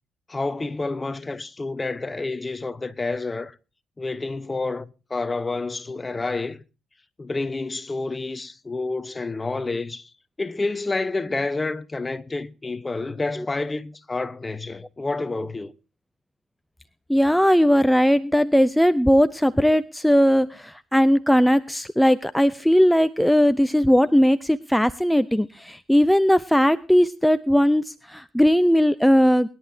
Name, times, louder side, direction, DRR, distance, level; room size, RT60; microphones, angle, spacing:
voice 1, 0.3-3.6 4.0-6.6 7.2-10.1 10.4-15.7, left 3 dB, 20° left, 1.0 m, -29 dB
voice 2, 17.1-29.5, equal, ahead, 0.6 m, -18 dB
21.5 x 11.0 x 2.8 m
cardioid pair, 90°, 0 cm